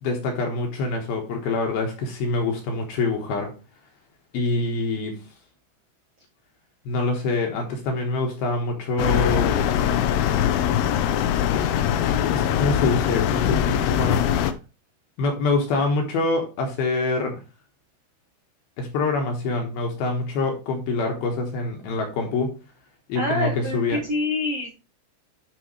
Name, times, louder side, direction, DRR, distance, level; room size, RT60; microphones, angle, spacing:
voice 1, 0.0-3.5 4.3-5.2 6.9-9.7 11.5-14.2 15.2-17.4 18.8-22.6 23.1-24.0, left 3 dB, 65° left, 2 dB, 2.8 m, -25 dB
sound 1, 9.0-14.5, left 10 dB, 85° left, 2.3 m, -22 dB
voice 2, 23.1-24.7, left 2 dB, 70° right, -2 dB, 1.4 m, -26 dB
12.0 x 4.8 x 3.2 m, 0.30 s
omnidirectional pair, 5.5 m